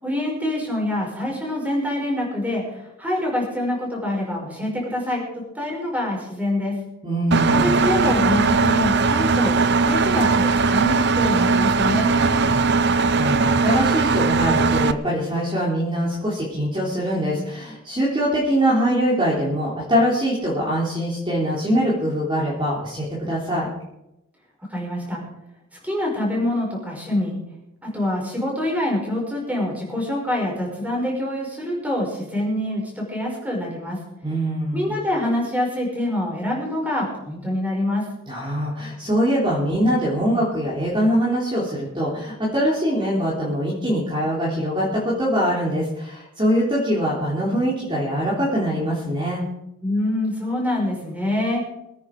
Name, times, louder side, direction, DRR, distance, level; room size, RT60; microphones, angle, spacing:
voice 1, 0.0-5.2 5.5-6.7 7.5-9.6 9.8-12.1 24.6-25.2 25.8-27.4 27.8-34.0 34.7-38.0 49.8-51.6, left 1 dB, 5° right, -2 dB, 5.1 m, -25 dB
voice 2, 7.0-7.8 12.2-23.7 34.2-34.9 38.3-49.4, equal, 20° right, -6 dB, 3.5 m, -23 dB
Engine, 7.3-14.9, right 4 dB, 50° right, 0.6 m, -19 dB
23.0 x 9.7 x 4.9 m, 0.87 s
head